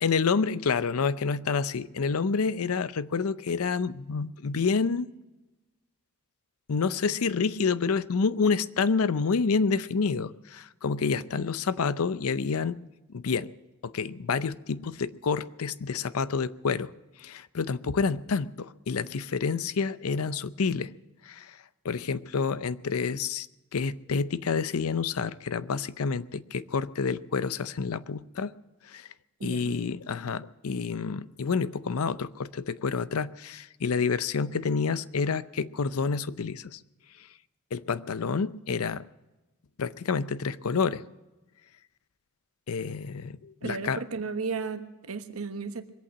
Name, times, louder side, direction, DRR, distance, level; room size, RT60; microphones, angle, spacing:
voice 1, 0.0-5.1 6.7-12.8 13.1-13.5 13.8-16.9 17.2-20.9 21.2-21.6 21.8-23.5 23.7-28.5 28.9-29.1 29.4-36.8 37.7-39.0 39.8-41.0 42.7-44.0, left 5 dB, 80° left, 0.6 m, -28 dB
voice 2, 29.4-29.8 43.6-45.9, right 4 dB, 80° right, 1.2 m, -34 dB
22.5 x 8.6 x 7.4 m
head